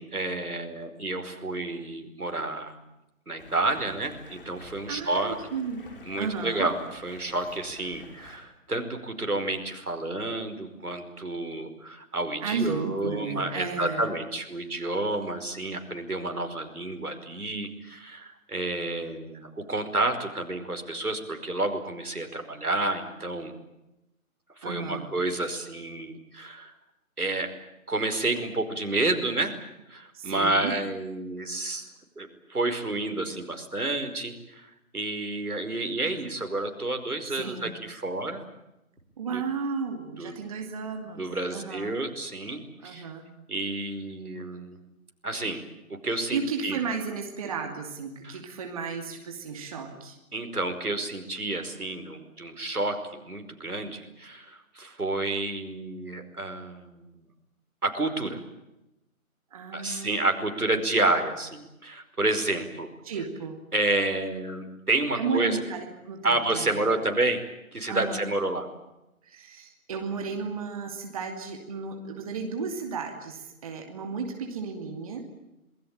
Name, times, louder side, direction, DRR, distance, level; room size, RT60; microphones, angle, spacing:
voice 1, 0.0-2.8 3.3-5.4 6.1-23.5 24.6-26.7 27.2-27.5 27.9-29.5 29.9-31.9 32.2-38.4 39.3-39.4 40.2-40.4 41.1-43.1 43.5-44.8 45.2-46.8 48.2-48.4 50.3-57.2 57.8-58.4 59.7-62.9 63.7-65.6 66.2-67.4 67.7-68.7, right 2 dB, 85° right, 5 dB, 5.2 m, -30 dB
Stream, 3.4-8.4, left 3 dB, 35° left, 6.2 m, -50 dB
voice 2, 4.9-5.8 6.2-6.7 12.4-14.1 24.6-25.1 30.1-30.7 37.2-37.7 39.2-42.0 42.8-43.2 46.3-50.2 59.5-60.2 63.0-63.6 65.2-66.8 67.9-68.3 69.2-75.2, right 5 dB, 25° right, 3 dB, 2.6 m, -33 dB
27.5 x 20.0 x 8.9 m, 0.92 s
figure-of-eight pair, 155°, 43 cm